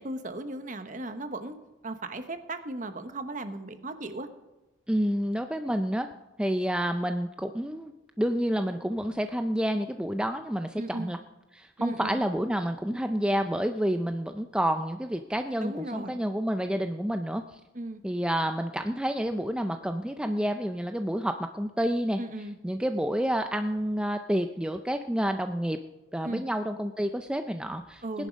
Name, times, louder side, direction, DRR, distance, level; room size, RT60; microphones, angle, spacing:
voice 1, 0.0-1.6 1.8-4.3 10.8-11.1 11.8-12.2 15.6-16.2 17.7-18.0 22.2-22.5 26.2-26.4 28.0-28.3, right 2 dB, 40° right, 9 dB, 1.0 m, -36 dB
voice 2, 4.9-6.1 6.4-7.9 8.2-11.2 11.5-17.6 18.0-22.2 22.6-25.8 26.1-28.0, equal, 5° right, 7 dB, 0.4 m, -29 dB
19.0 x 10.5 x 5.2 m, 1.0 s
head